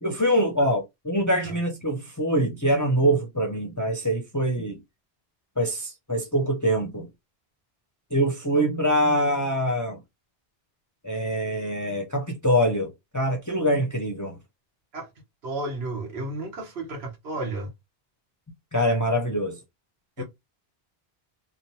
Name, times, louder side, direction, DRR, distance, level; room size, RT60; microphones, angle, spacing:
voice 1, 0.0-4.8 5.6-7.1 8.1-10.0 11.0-14.4 18.7-19.6 20.2-20.3, equal, 25° left, 0.4 m, -24 dB
voice 2, 15.4-17.7 20.2-20.3, right 2 dB, 75° right, 1.2 m, -32 dB
2.9 x 2.1 x 2.6 m
omnidirectional pair, 1.1 m